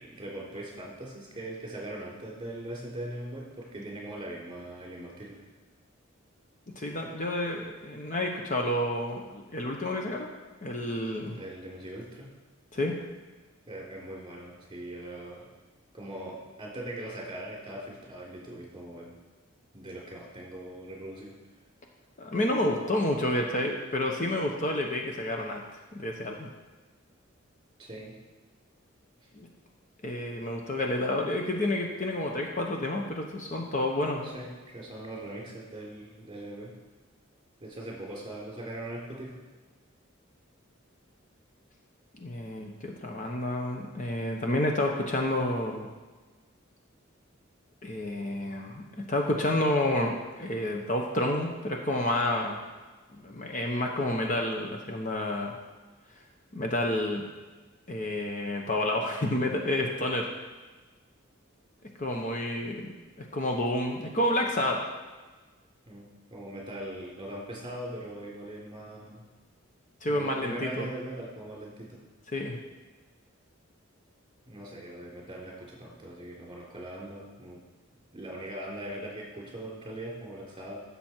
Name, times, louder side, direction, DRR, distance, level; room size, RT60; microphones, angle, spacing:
voice 1, 0.0-5.4 11.2-12.3 13.7-15.5 15.9-19.1 19.7-21.3 27.8-28.1 34.2-36.7 37.6-39.3 65.9-69.3 70.1-72.0 74.5-77.6 78.1-80.8, right 1 dB, 25° right, -3 dB, 3.5 m, -41 dB
voice 2, 6.7-10.3 10.6-11.4 12.7-12.9 22.2-25.6 25.9-26.5 29.4-29.5 30.0-34.3 42.1-45.9 47.8-52.6 53.2-55.5 56.5-57.3 57.9-60.3 62.0-62.9 63.2-64.8 70.0-70.9 72.3-72.6, left 1 dB, 40° left, 1 dB, 1.0 m, -29 dB
14.5 x 7.1 x 4.5 m, 1.3 s
head